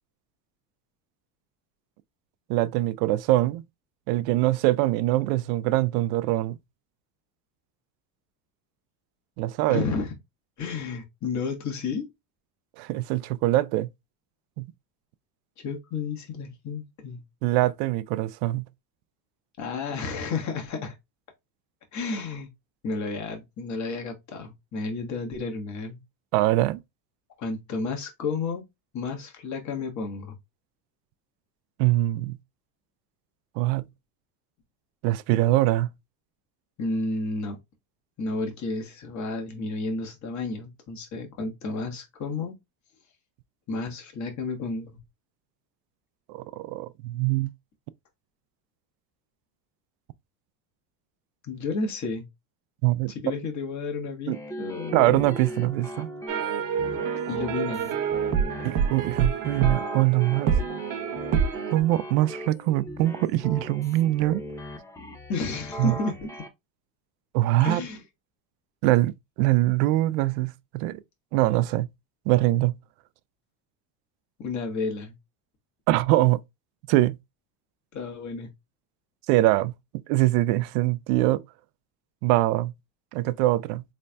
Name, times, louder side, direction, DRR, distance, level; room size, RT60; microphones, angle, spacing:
voice 1, 2.5-3.6 4.1-6.6 9.4-9.8 12.8-13.9 14.6-14.7 17.4-18.7 26.3-26.8 31.8-32.4 33.6-33.9 35.0-35.9 46.3-47.5 52.8-53.1 54.3-54.4 54.9-56.1 58.6-60.5 61.7-64.4 65.8-65.9 67.3-67.8 68.8-71.0 71.3-71.9 72.3-72.7 75.9-76.4 76.9-77.2 79.3-79.7 80.1-81.4 82.2-82.7 83.1-83.8, right 17 dB, 80° right, 0.6 m, -23 dB
voice 2, 9.7-10.1 10.6-12.1 15.6-17.2 19.6-20.9 21.9-22.5 22.8-26.0 27.4-28.6 28.9-30.3 36.8-37.6 38.2-42.5 43.7-45.0 51.4-52.3 53.1-55.2 57.3-57.9 65.3-66.4 67.6-68.0 74.4-75.2 77.9-78.5, left 3 dB, 35° left, 1.3 m, -31 dB
sound 1, 54.3-66.5, equal, 5° left, 0.4 m, -38 dB
sound 2, 56.3-61.8, right 7 dB, 45° right, 0.7 m, -27 dB
3.9 x 3.3 x 2.2 m
cardioid pair, 130°, 48 cm